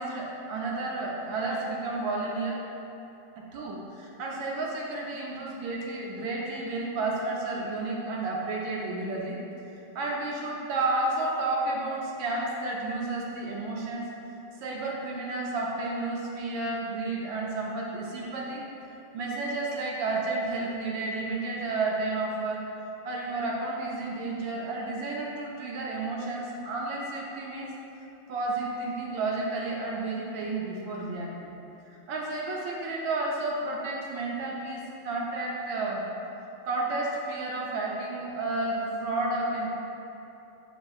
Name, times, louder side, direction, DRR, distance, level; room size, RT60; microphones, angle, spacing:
voice 1, 0.0-2.6 3.5-9.4 9.9-14.1 14.6-18.6 19.1-22.6 23.0-27.7 28.3-31.5 31.9-36.1 36.6-39.7, right 2 dB, 75° right, -2 dB, 1.3 m, -31 dB
5.9 x 3.5 x 2.3 m, 2.9 s
omnidirectional pair, 2.3 m